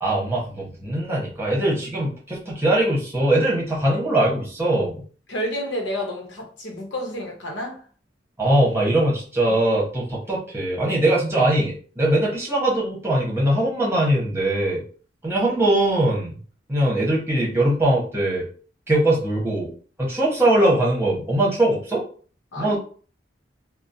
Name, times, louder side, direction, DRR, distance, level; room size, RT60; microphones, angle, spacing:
voice 1, 0.0-5.0 8.4-14.8 15.2-16.3 16.7-18.5 18.9-19.7 20.0-22.0 22.6-22.8, right 1 dB, 15° right, 1.0 m, -21 dB
voice 2, 5.3-7.8 22.5-22.8, equal, 80° left, 0.8 m, -30 dB
2.9 x 2.0 x 2.6 m
head